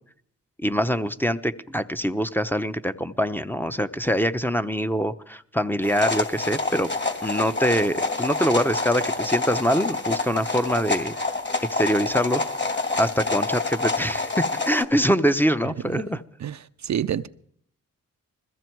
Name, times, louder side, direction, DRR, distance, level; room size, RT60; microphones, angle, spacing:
voice 1, 0.6-6.9 7.2-11.1 11.7-12.4 12.7-16.2, equal, 5° left, 0.9 m, -24 dB
sound 1, 5.8-14.8, left 3 dB, 35° left, 2.6 m, -27 dB
voice 2, 16.4-17.3, right 9 dB, 55° right, 0.6 m, -28 dB
21.0 x 14.5 x 4.6 m
cardioid pair, 55°, 34 cm